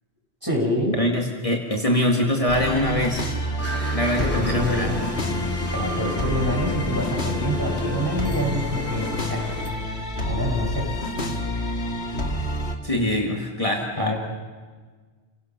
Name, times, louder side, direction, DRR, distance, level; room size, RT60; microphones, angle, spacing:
voice 1, 0.4-0.9 4.2-5.0 5.7-9.5 10.3-10.9 14.0-14.2, equal, 20° right, -1 dB, 5.6 m, -26 dB
voice 2, 1.0-3.3 3.9-4.9 12.8-14.1, left 1 dB, 35° left, 0 dB, 2.0 m, -23 dB
sound 1, 2.5-12.8, left 1 dB, 85° left, 2.3 m, -28 dB
sound 2, 3.6-9.7, equal, 15° left, 3.5 m, -33 dB
30.0 x 18.0 x 5.9 m, 1.5 s
omnidirectional pair, 1.1 m